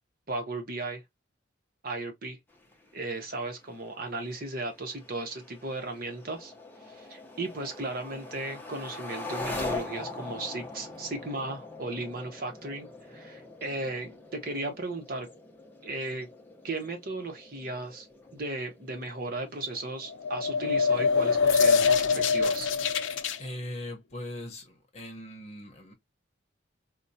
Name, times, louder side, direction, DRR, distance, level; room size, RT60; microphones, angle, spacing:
voice 1, 0.3-1.0 1.8-2.4 2.9-6.5 6.9-15.3 15.8-16.3 16.6-18.1 18.3-22.7, right 2 dB, 50° right, 0.9 m, -36 dB
sound 1, 2.5-21.3, left 3 dB, 10° left, 0.7 m, -43 dB
sound 2, 20.1-23.4, left 5 dB, 80° left, 0.5 m, -24 dB
voice 2, 23.4-25.9, left 1 dB, 35° left, 0.9 m, -40 dB
4.4 x 2.2 x 2.6 m
head